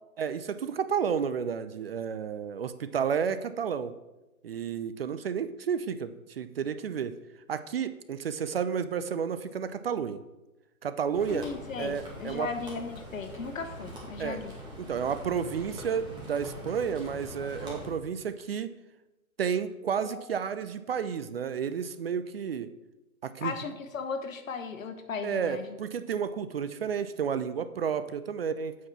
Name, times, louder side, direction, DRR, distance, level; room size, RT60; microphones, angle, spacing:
voice 1, 0.2-3.9 4.4-7.1 7.5-10.2 10.8-11.5 11.8-12.5 14.2-14.4 14.8-18.7 19.4-22.7 23.2-23.5 25.2-28.8, right 7 dB, 45° right, 12 dB, 0.4 m, -31 dB
sound 1, 11.1-17.9, equal, 10° right, 1.9 m, -43 dB
voice 2, 11.3-14.5 20.0-20.2 23.4-25.7, left 5 dB, 65° left, 8 dB, 1.2 m, -36 dB
8.4 x 4.7 x 5.7 m, 1.0 s
figure-of-eight pair, 125°, 43 cm